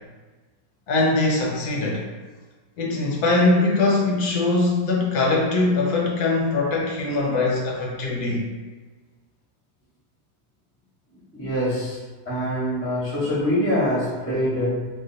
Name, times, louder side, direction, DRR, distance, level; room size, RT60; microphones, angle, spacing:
voice 1, 0.9-2.1 2.8-8.5, left 2 dB, 70° left, -2 dB, 1.0 m, -22 dB
voice 2, 11.3-12.0 12.3-14.9, equal, 15° left, -7 dB, 0.5 m, -24 dB
2.8 x 2.1 x 3.8 m, 1.3 s
omnidirectional pair, 1.9 m